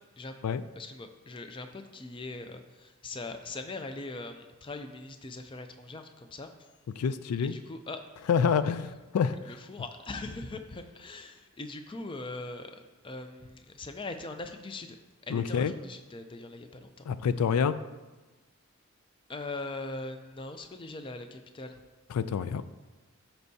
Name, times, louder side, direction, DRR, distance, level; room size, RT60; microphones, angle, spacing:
voice 1, 0.8-6.5 7.4-8.0 9.4-15.0 15.3-17.0 19.3-21.8, left 2 dB, 20° left, 7 dB, 0.4 m, -41 dB
voice 2, 7.0-7.5 8.3-9.4 15.3-15.7 17.1-17.7 22.1-22.6, left 6 dB, 90° left, 14 dB, 0.3 m, -27 dB
13.5 x 4.5 x 2.7 m, 1.2 s
head